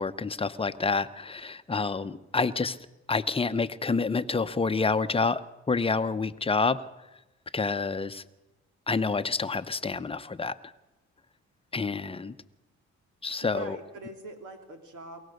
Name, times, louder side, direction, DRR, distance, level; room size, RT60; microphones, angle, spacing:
voice 1, 0.0-2.8 3.1-5.4 5.7-6.8 7.5-8.2 8.9-10.6 11.7-12.3 13.2-13.8, left 4 dB, 20° left, 11 dB, 0.8 m, -28 dB
voice 2, 13.4-15.3, right 2 dB, 80° right, 4 dB, 3.4 m, -43 dB
22.5 x 17.5 x 6.6 m, 1.0 s
cardioid pair, 90°, 30 cm